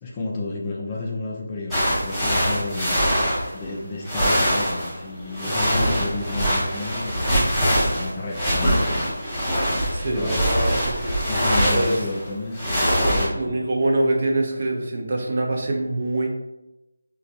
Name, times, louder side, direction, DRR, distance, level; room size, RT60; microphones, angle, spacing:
voice 1, 0.0-3.0 3.5-9.1 10.1-10.4 11.3-13.5, left 2 dB, 20° left, -3 dB, 0.3 m, -31 dB
sound 1, 1.7-3.8 4.0-13.3, equal, ahead, 0.8 m, -23 dB
voice 2, 9.9-11.1 11.6-12.0 13.3-16.3, right 2 dB, 40° right, 0 dB, 0.6 m, -24 dB
3.9 x 2.3 x 2.6 m, 0.96 s
figure-of-eight pair, 170°, 0 cm